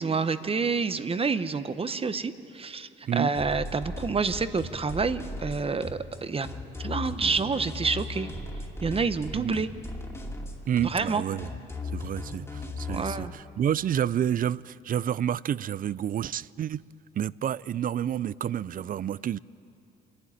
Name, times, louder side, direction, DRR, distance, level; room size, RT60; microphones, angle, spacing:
voice 1, 0.0-6.5 6.8-8.3 8.8-9.7 10.8-11.2 12.9-13.3, right 4 dB, 30° right, 13 dB, 0.9 m, -28 dB
sound 1, 3.3-13.2, left 2 dB, 15° left, 2.5 m, -37 dB
voice 2, 10.7-11.5 11.9-16.8 17.2-19.4, right 10 dB, 45° right, 21 dB, 0.4 m, -29 dB
26.5 x 11.5 x 9.9 m, 2.8 s
cardioid pair, 90°, 20 cm